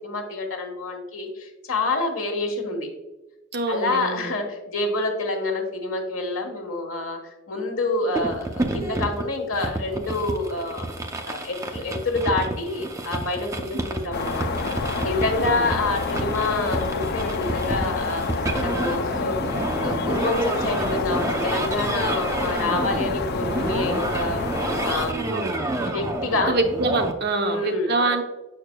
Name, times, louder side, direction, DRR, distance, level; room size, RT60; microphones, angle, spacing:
voice 1, 0.0-2.9 3.7-10.9 11.3-24.4 24.8-25.3 25.9-26.5 27.4-28.1, left 2 dB, 85° left, 2 dB, 1.2 m, -27 dB
voice 2, 3.5-4.3 15.5-15.7 25.3-25.5 26.5-28.2, right 3 dB, 55° right, 4 dB, 0.7 m, -25 dB
sound 1, 8.2-27.1, right 1 dB, 15° right, 0.5 m, -29 dB
sound 2, 14.1-25.1, left 4 dB, 50° left, 0.4 m, -29 dB
6.6 x 6.5 x 2.2 m, 1.0 s
head